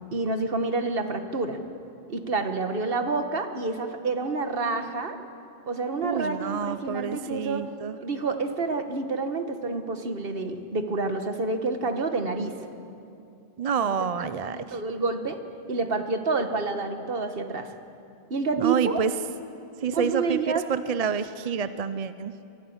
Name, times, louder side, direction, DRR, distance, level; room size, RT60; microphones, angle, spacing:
voice 1, 0.1-1.6 2.1-5.2 5.7-7.6 8.0-12.5 13.9-15.4 15.7-17.7 18.3-19.0 19.9-20.6, right 3 dB, 65° right, 7 dB, 1.6 m, -28 dB
voice 2, 6.0-8.0 13.6-14.6 18.6-19.1 19.8-20.4 20.7-22.3, right 6 dB, 45° right, 12 dB, 0.6 m, -28 dB
23.5 x 16.0 x 8.0 m, 2.6 s
omnidirectional pair, 1.0 m